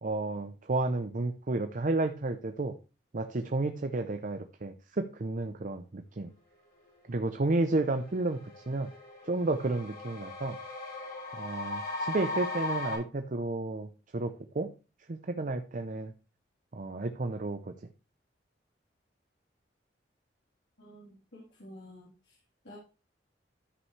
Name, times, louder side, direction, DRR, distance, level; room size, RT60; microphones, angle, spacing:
voice 1, 0.0-2.8 3.1-6.3 7.1-8.4 8.7-8.9 9.2-10.6 11.4-14.7 15.1-16.1 16.7-17.7, right 2 dB, 50° right, 8 dB, 0.6 m, -32 dB
sound 1, 7.2-7.3 7.6-13.0, left 2 dB, 60° left, 4.1 m, -38 dB
voice 2, 20.8-22.3 22.6-22.8, left 1 dB, 85° left, -6 dB, 3.3 m, -51 dB
13.0 x 5.5 x 3.2 m, 0.32 s
head